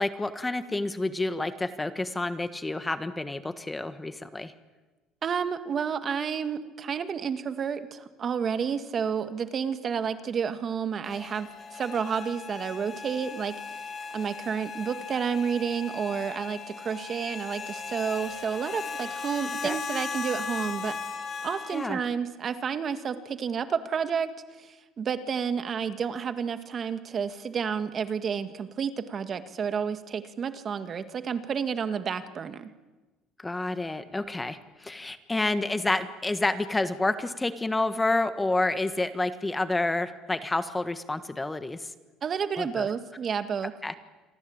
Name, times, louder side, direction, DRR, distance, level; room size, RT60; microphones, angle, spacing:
voice 1, 0.0-4.5 19.6-19.8 21.7-22.0 33.4-41.9 42.6-42.9 43.8-43.9, left 2 dB, 10° left, 10 dB, 1.5 m, -29 dB
voice 2, 5.2-13.5 14.1-21.0 21.4-24.3 24.6-32.7 42.2-43.7, right 7 dB, 40° right, 9 dB, 1.9 m, -30 dB
sound 1, 11.0-21.9, left 5 dB, 35° left, 3.5 m, -37 dB
28.0 x 23.5 x 8.9 m, 1.2 s
cardioid pair, 115°, 0 cm